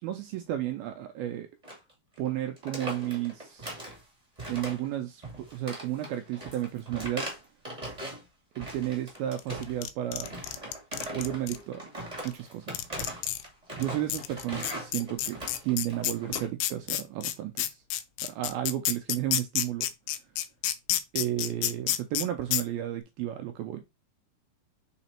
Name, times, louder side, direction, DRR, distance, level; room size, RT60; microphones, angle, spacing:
voice 1, 0.0-1.5 2.2-3.7 4.5-7.3 8.6-10.4 11.1-11.9 12.3-12.7 13.8-15.4 15.6-17.8 18.2-19.9 21.1-23.8, right 12 dB, 80° right, 2.2 m, -33 dB
sound 1, 1.6-1.9 2.1-2.3 2.6-4.0 4.4-4.9 5.2-8.2 8.5-9.9 10.2-16.5, right 1 dB, 15° right, 1.2 m, -40 dB
sound 2, 9.4-11.6 12.3-12.4 12.7-13.4 13.8-13.9 14.1-22.2 22.5-22.6, left 13 dB, 80° left, 2.5 m, -29 dB
5.9 x 4.0 x 4.3 m
omnidirectional pair, 4.9 m